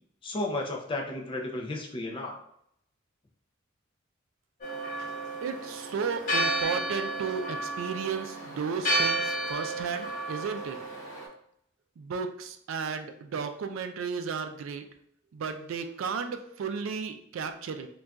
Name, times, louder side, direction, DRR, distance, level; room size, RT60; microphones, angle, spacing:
voice 1, 0.2-2.3, left 2 dB, 25° left, 1 dB, 0.4 m, -33 dB
Church bell, 4.6-11.3, right 1 dB, 40° left, 1.0 m, -32 dB
voice 2, 5.4-10.8 12.0-14.8 15.3-17.9, right 5 dB, 85° right, 7 dB, 0.3 m, -34 dB
3.9 x 2.3 x 2.3 m, 0.72 s
head